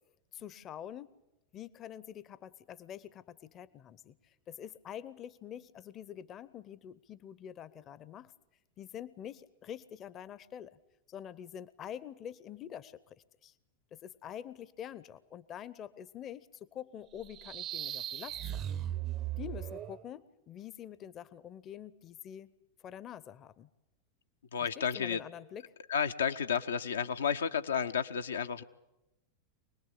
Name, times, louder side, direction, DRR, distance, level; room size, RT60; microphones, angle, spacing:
voice 1, 0.3-1.1 1.5-8.3 8.8-10.8 11.1-13.1 13.4-13.5 13.9-18.7 19.4-22.5 22.8-23.7 24.6-25.6, left 10 dB, 30° left, 19 dB, 0.8 m, -46 dB
sound 1, 17.2-20.0, right 12 dB, 35° right, 0.8 m, -38 dB
voice 2, 24.5-25.2 25.9-28.6, left 7 dB, 70° left, 8 dB, 0.8 m, -32 dB
25.0 x 20.0 x 8.4 m, 0.94 s
figure-of-eight pair, 90°, 0 cm